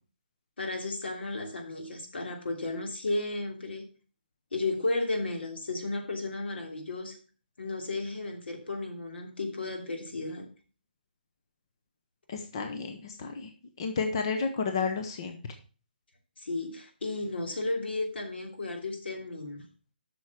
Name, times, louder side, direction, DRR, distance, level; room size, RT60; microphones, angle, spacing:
voice 1, 0.6-3.8 4.5-7.2 7.6-10.5 16.4-19.6, left 2 dB, 80° left, 3 dB, 3.0 m, -33 dB
voice 2, 12.3-13.5 13.8-15.4, left 5 dB, 25° left, 5 dB, 0.8 m, -31 dB
7.8 x 6.2 x 6.0 m, 0.37 s
hypercardioid pair, 175°, 6 cm